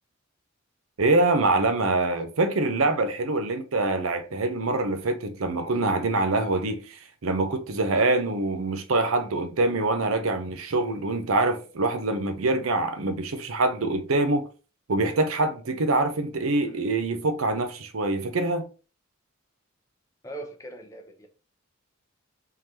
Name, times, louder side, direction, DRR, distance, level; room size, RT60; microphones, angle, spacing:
voice 1, 1.0-14.5 14.9-18.6, right 2 dB, 85° right, 0.7 m, -25 dB
voice 2, 20.2-21.3, right 2 dB, 15° left, 0.7 m, -41 dB
3.8 x 3.2 x 2.8 m
head